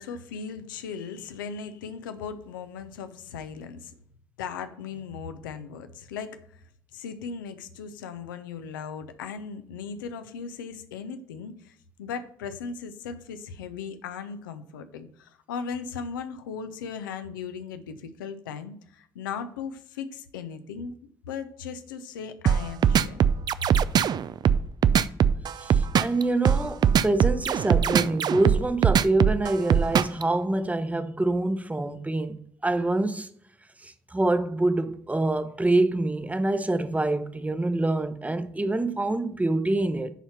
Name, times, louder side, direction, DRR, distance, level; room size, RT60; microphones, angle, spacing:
voice 1, 0.0-3.9 4.4-6.6 6.9-20.9 21.3-23.2, left 6 dB, 75° left, 0.7 m, -37 dB
sound 1, 22.5-30.2, right 8 dB, 40° right, 0.4 m, -21 dB
voice 2, 25.6-33.3 33.8-40.1, right 2 dB, 15° right, 0.9 m, -26 dB
10.0 x 4.2 x 5.6 m
figure-of-eight pair, 45°, 11 cm